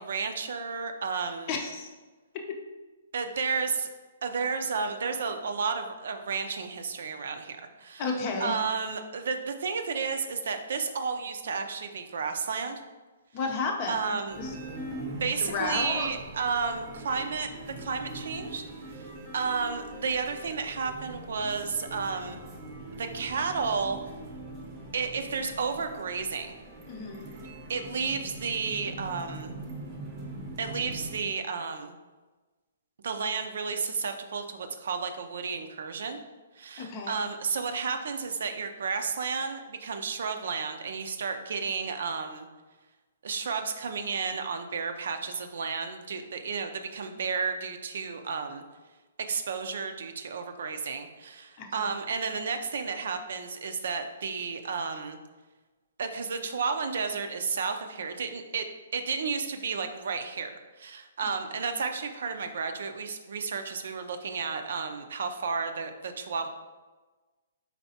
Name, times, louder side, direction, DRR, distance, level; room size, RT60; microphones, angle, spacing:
voice 1, 0.0-1.5 3.1-3.9 4.2-8.1 8.4-12.8 13.9-14.4 15.1-17.5 17.8-18.6 19.0-22.4 23.0-24.0 24.9-26.5 27.7-29.5 30.6-31.9 33.0-36.2 36.6-42.5 43.2-48.6 49.3-55.2 56.0-58.6 58.9-66.5, right 5 dB, 70° right, 7 dB, 0.5 m, -32 dB
voice 2, 1.5-1.9 8.0-8.6 13.3-14.5 15.4-16.1 26.9-27.3 36.8-37.2 51.6-51.9, left 4 dB, 35° left, 3 dB, 0.6 m, -32 dB
sound 1, 14.3-31.2, right 1 dB, 20° right, 0.8 m, -42 dB
4.5 x 4.0 x 2.8 m, 1.2 s
hypercardioid pair, 155°, 0 cm